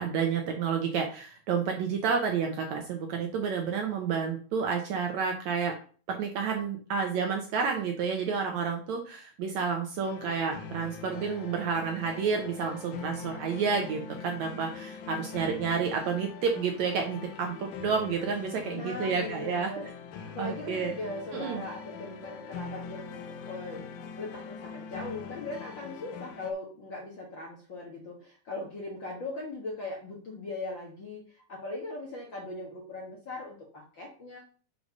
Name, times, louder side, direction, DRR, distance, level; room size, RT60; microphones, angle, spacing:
voice 1, 0.0-5.7 6.1-19.7 20.4-20.9 21.3-21.6, right 6 dB, 70° right, 3 dB, 1.8 m, -30 dB
sound 1, 10.0-26.5, left 6 dB, 75° left, 2.4 m, -43 dB
voice 2, 18.7-19.9 20.3-23.9 24.2-34.4, left 2 dB, 50° left, -2 dB, 1.5 m, -39 dB
6.4 x 4.8 x 5.3 m, 0.41 s
omnidirectional pair, 4.0 m